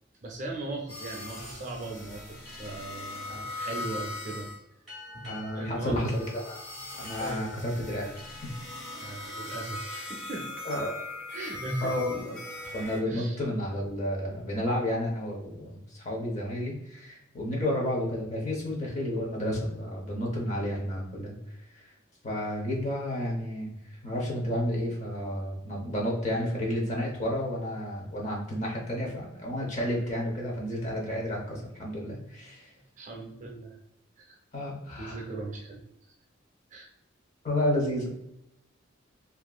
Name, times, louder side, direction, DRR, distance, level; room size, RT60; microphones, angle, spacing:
voice 1, 0.2-4.5 5.1-6.1 7.2-7.5 8.9-10.5 11.3-12.0 13.1-13.4 33.0-33.8 34.2-34.4 35.0-35.8 36.7-36.9, right 2 dB, 40° right, 0 dB, 0.4 m, -38 dB
sound 1, 0.9-4.6 5.0-13.0, left 2 dB, 80° left, 1.4 m, -40 dB
sound 2, 4.9-10.0, left 3 dB, ahead, 1.2 m, -50 dB
voice 2, 5.2-6.6 7.0-8.1 10.6-10.9 11.8-12.4 12.7-21.9 22.2-32.7 34.5-35.2 37.4-38.1, left 1 dB, 35° left, -2 dB, 0.7 m, -31 dB
2.6 x 2.4 x 2.2 m, 0.81 s
head